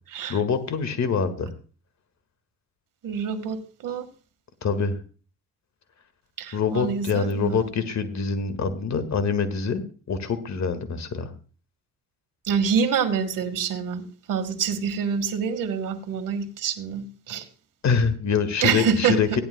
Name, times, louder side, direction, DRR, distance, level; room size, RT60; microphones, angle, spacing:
voice 1, 0.3-1.5 4.6-5.0 6.5-11.3 17.8-19.4, left 5 dB, 50° left, 11 dB, 1.9 m, -25 dB
voice 2, 3.0-4.1 6.4-7.6 12.4-17.5 18.6-19.2, right 7 dB, 65° right, 9 dB, 1.7 m, -26 dB
17.0 x 11.0 x 2.2 m, 0.37 s
supercardioid pair, 60°, 35 cm